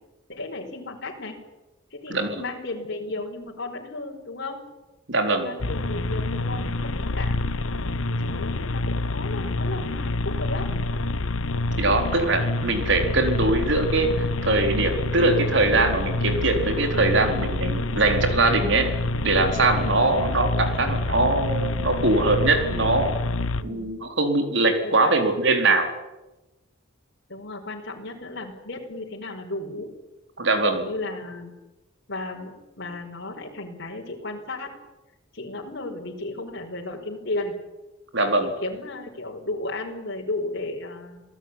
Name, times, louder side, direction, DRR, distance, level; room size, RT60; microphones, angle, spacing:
voice 1, 0.3-1.4 1.9-4.6 5.4-7.5 8.1-10.7 11.8-12.0 17.9-18.0 19.8-20.0 23.6-23.9 24.8-25.2 27.3-29.9 30.6-31.5 32.1-34.7 35.3-37.5 38.2-41.2, left 2 dB, 60° left, 0 dB, 5.2 m, -34 dB
voice 2, 2.1-2.4 5.1-5.5 11.8-18.9 19.2-23.1 23.6-25.9 30.4-30.8 38.1-38.5, right 2 dB, 65° right, 5 dB, 4.3 m, -22 dB
sound 1, 5.6-23.6, left 2 dB, 85° left, 1.2 m, -27 dB
27.5 x 18.0 x 9.9 m, 1.1 s
head